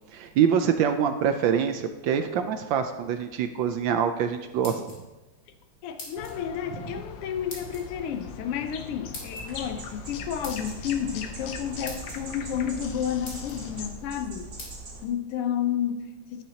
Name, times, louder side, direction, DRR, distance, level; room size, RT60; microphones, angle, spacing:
voice 1, 0.1-4.8, right 8 dB, 75° right, 1.1 m, -25 dB
sound 1, 4.4-5.3 6.0-6.4 7.5-7.8 9.1-9.4 10.4-10.8 11.5-11.6 11.8-12.2 12.8-12.9 13.2-13.6 14.6-14.7, left 2 dB, 45° left, 2.4 m, -41 dB
voice 2, 5.8-14.5 15.0-16.4, left 9 dB, 85° left, 1.7 m, -31 dB
sound 2, 6.1-13.9, left 6 dB, 70° left, 1.3 m, -41 dB
sound 3, 9.4-15.1, right 2 dB, 50° right, 2.6 m, -42 dB
10.0 x 9.3 x 2.8 m
omnidirectional pair, 2.4 m